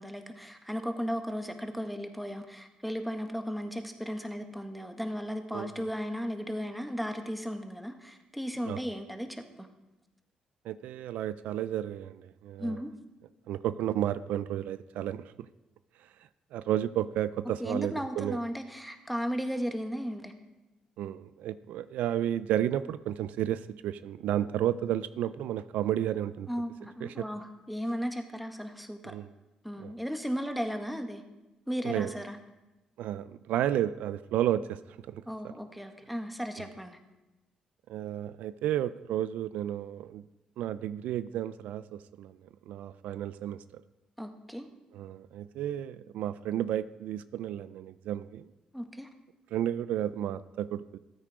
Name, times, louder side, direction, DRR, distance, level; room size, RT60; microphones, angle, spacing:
voice 1, 0.0-9.7 12.6-12.9 17.6-20.3 26.5-29.0 29.6-31.2 31.7-32.4 35.2-37.0 44.2-44.7 48.7-49.1, equal, ahead, 6 dB, 1.7 m, -35 dB
voice 2, 10.6-12.8 13.5-15.3 16.5-18.4 21.0-26.5 27.0-27.2 29.0-29.3 29.8-29.9 31.8-32.1 33.0-34.8 35.1-35.2 37.9-40.2 40.6-42.4 42.7-43.8 44.9-48.5 49.5-51.0, right 11 dB, 80° right, 15 dB, 0.4 m, -32 dB
13.5 x 9.1 x 5.0 m, 1.0 s
supercardioid pair, 65°, 2 cm